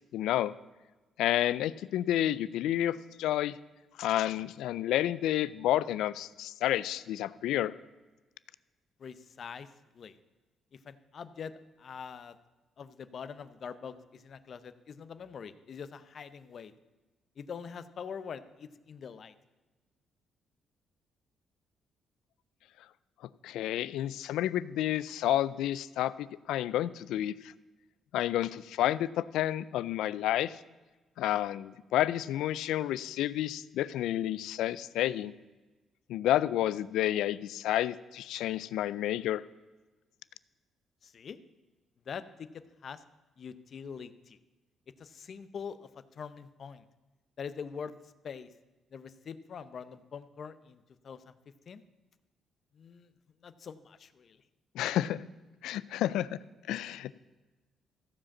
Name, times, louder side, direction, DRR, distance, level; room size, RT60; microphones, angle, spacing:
voice 1, 0.1-0.5 1.2-3.6 4.0-7.7 23.4-27.5 28.1-30.6 31.2-35.3 36.1-39.4 54.7-55.2 55.6-56.4 56.7-57.2, left 13 dB, 85° left, 18 dB, 0.3 m, -30 dB
voice 2, 9.0-9.7 9.9-10.2 10.7-11.5 11.8-12.4 12.8-16.7 17.4-19.3 41.0-41.4 42.1-42.5 42.8-43.0 43.4-44.4 45.0-46.8 47.4-47.9 48.2-48.5 48.9-51.3 51.7-51.8 52.7-53.1 53.4-54.4, left 6 dB, 55° left, 13 dB, 0.6 m, -44 dB
14.5 x 5.0 x 7.2 m, 1.2 s
cardioid pair, 90°, 0 cm